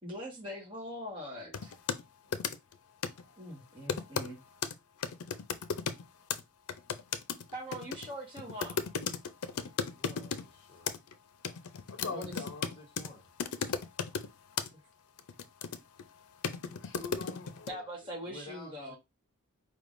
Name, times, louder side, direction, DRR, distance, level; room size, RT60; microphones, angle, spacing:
voice 1, 0.0-1.7 3.4-4.4 7.5-8.8 12.1-12.3 14.7-14.8 17.7-19.0, equal, 25° right, 1.5 m, -42 dB
sound 1, 1.5-2.0 2.3-2.7 3.0-3.2 3.9-4.3 4.6-4.7 5.0-6.0 6.3-6.4 6.7-10.4 10.9-11.1 11.4-13.1 13.4-14.3 14.6-14.7 15.2-16.0 16.4-17.7, left 6 dB, 85° left, 0.5 m, -35 dB
voice 2, 3.2-3.6 11.9-12.7 16.7-17.9, left 4 dB, 60° left, 0.8 m, -44 dB
voice 3, 10.0-10.9 12.8-13.3 18.2-19.0, left 1 dB, 25° left, 1.3 m, -52 dB
4.7 x 3.4 x 2.6 m
head